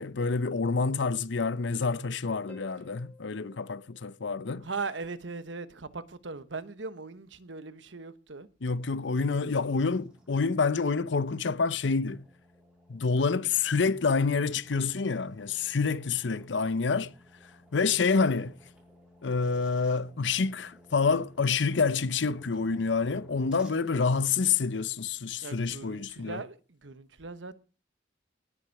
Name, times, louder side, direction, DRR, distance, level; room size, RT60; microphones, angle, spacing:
voice 1, 0.0-4.6 8.6-12.2 12.9-17.1 17.7-18.5 19.2-26.4, left 4 dB, 70° left, 0.7 m, -27 dB
Harp, 2.5-5.0 8.5-8.6, left 3 dB, 10° left, 3.5 m, -56 dB
voice 2, 4.6-8.5 25.4-27.6, right 4 dB, 75° right, 1.2 m, -39 dB
sound 1, 8.7-23.7, left 1 dB, 5° right, 6.0 m, -58 dB
19.0 x 8.0 x 4.7 m
head